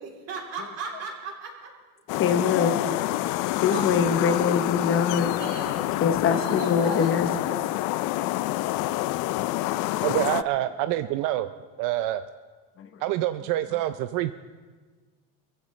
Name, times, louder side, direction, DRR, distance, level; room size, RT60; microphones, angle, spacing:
voice 1, 0.0-1.7 3.4-4.6 5.3-5.9 6.2-7.7 8.6-8.9, right 4 dB, 50° right, 3.4 m, -37 dB
sound 1, 2.1-10.4, left 16 dB, 70° left, 0.5 m, -27 dB
voice 2, 2.2-2.8 3.6-5.4 6.0-7.3 12.8-13.0, left 6 dB, 40° left, 0.9 m, -23 dB
voice 3, 10.0-11.5 11.8-12.2 13.0-14.3, right 14 dB, 75° right, 0.6 m, -26 dB
23.0 x 15.0 x 3.2 m
cardioid pair, 155°, 33 cm